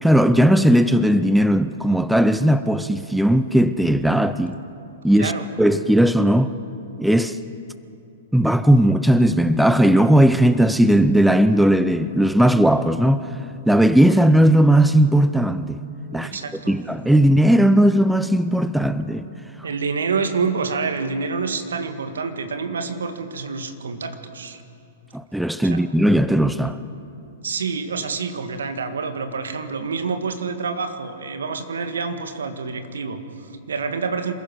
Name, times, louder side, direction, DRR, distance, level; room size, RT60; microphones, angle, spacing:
voice 1, 0.0-4.6 5.0-5.3 5.6-6.5 7.0-7.4 8.3-13.3 13.7-15.8 16.1-16.3 16.7-19.2 25.1-26.8, right 1 dB, ahead, 0.6 m, -17 dB
voice 2, 16.1-16.8 19.6-24.6 25.6-25.8 27.4-34.3, right 5 dB, 75° right, 1.9 m, -27 dB
26.5 x 15.5 x 6.2 m
figure-of-eight pair, 110°, 0 cm